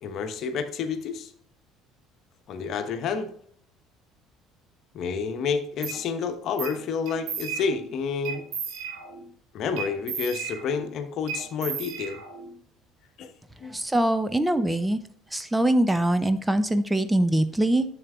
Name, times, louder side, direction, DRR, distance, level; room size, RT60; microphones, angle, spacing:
voice 1, 0.0-1.3 2.5-3.3 4.9-8.4 9.5-12.2 13.2-13.3 13.6-13.8, left 5 dB, 55° left, 8 dB, 1.0 m, -29 dB
sound 1, 5.8-6.0 6.6-6.8 7.1-7.9 8.2-9.3 9.8-10.9 11.3-12.5, right 7 dB, 65° right, 1.8 m, -34 dB
voice 2, 13.7-15.0 15.3-17.9, right 1 dB, 10° right, 11 dB, 0.6 m, -23 dB
11.0 x 7.0 x 2.4 m, 0.62 s
hypercardioid pair, 60°, 0 cm